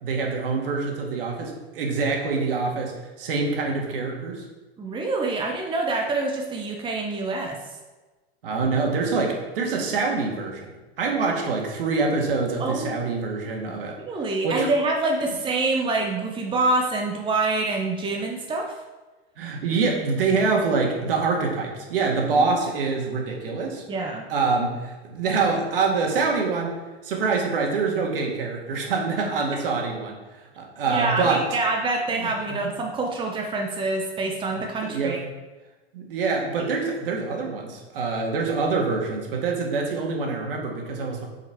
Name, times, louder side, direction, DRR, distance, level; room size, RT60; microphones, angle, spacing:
voice 1, 0.0-4.4 8.4-10.7 11.0-14.0 14.4-14.7 19.4-23.8 24.3-26.8 27.0-31.4 32.1-32.7 34.5-35.2 35.9-41.2, right 4 dB, 60° right, 0 dB, 1.9 m, -25 dB
voice 2, 4.8-7.6 12.6-13.0 13.7-18.7 23.9-24.2 30.9-35.2 36.6-36.9, right 3 dB, 15° right, 1 dB, 1.0 m, -26 dB
7.4 x 4.9 x 4.8 m, 1.2 s
figure-of-eight pair, 95°, 31 cm